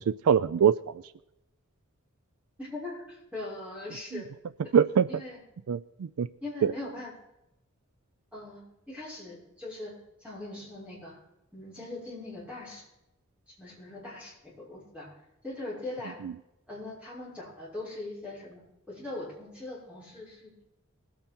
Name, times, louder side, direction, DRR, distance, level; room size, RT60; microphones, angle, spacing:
voice 1, 0.1-1.0 4.1-4.2 4.7-5.1 5.7-6.3 6.6-6.7 16.2-16.3, right 7 dB, 85° right, 15 dB, 0.4 m, -24 dB
voice 2, 2.6-4.3 4.7-4.8 5.1-5.4 6.4-7.1 8.3-9.9 10.2-11.2 11.5-12.9 13.5-15.1 15.4-16.2 16.7-18.6 18.9-20.7, left 2 dB, 5° right, -6 dB, 6.0 m, -41 dB
20.0 x 8.8 x 4.4 m, 0.88 s
head